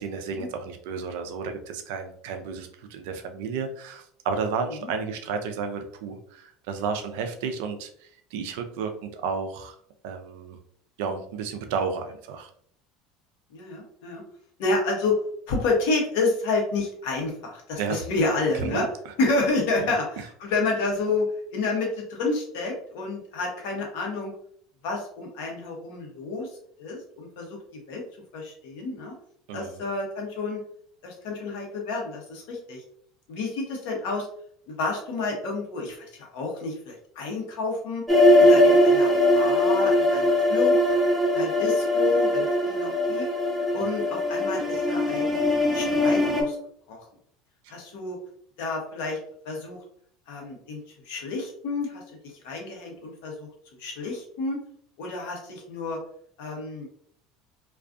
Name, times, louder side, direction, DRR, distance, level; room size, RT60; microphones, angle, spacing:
voice 1, 0.0-9.7 10.0-10.6 11.0-12.5 17.8-18.0 18.5-18.9 19.8-19.9 29.5-29.8 47.6-47.7, right 5 dB, 75° right, 6 dB, 0.4 m, -32 dB
voice 2, 13.5-14.2 14.6-15.2 15.5-18.8 19.2-21.3 21.5-24.3 24.8-26.5 26.8-27.6 27.9-28.0 28.3-29.1 29.5-30.6 31.0-32.8 33.3-34.3 34.7-38.0 38.4-40.8 41.3-43.3 43.7-45.3 45.7-46.6 46.9-47.0 47.7-48.2 48.6-49.2 49.4-49.8 50.3-50.8 51.1-53.5 53.8-54.6 55.0-56.0 56.4-56.9, left 3 dB, 70° left, 0 dB, 0.8 m, -29 dB
sound 1, 38.1-46.4, left 1 dB, 5° right, 0.7 m, -21 dB
2.4 x 2.3 x 2.4 m, 0.63 s
hypercardioid pair, 85°, 0 cm